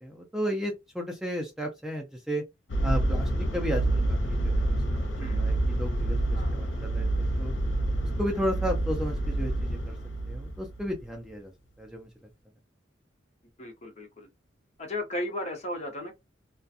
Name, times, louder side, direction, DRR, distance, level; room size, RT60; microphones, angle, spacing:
voice 1, 0.0-2.4 2.8-7.5 8.2-10.0 10.3-11.5 11.8-12.1, equal, 5° right, 0.4 m, -34 dB
sound 1, 2.7-11.0, right 1 dB, 80° left, 0.7 m, -28 dB
voice 2, 13.6-14.3 14.8-16.1, left 1 dB, 35° left, 0.8 m, -35 dB
2.4 x 2.2 x 2.6 m
head